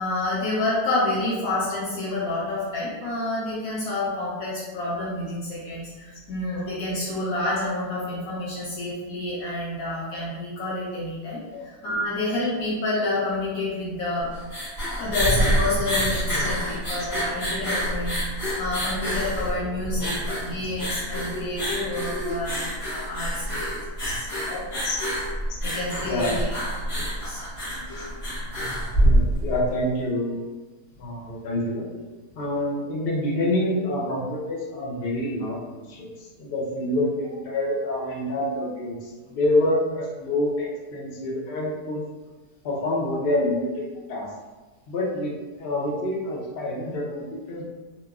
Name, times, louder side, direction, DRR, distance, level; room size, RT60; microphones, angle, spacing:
voice 1, 0.0-11.4 11.8-14.3 15.0-23.8 24.1-24.5 25.6-26.5 26.9-28.0 28.5-29.2, left 2 dB, 70° left, -7 dB, 1.0 m, -29 dB
sound 1, 14.3-29.7, right 1 dB, 45° left, 1.3 m, -26 dB
voice 2, 24.5-25.0 25.5-25.6 26.0-26.4 28.0-28.1 28.9-30.5 31.0-31.8 32.4-42.0 42.6-44.3 44.9-47.6, left 1 dB, 85° left, -3 dB, 0.5 m, -27 dB
2.8 x 2.1 x 2.3 m, 1.3 s
omnidirectional pair, 1.7 m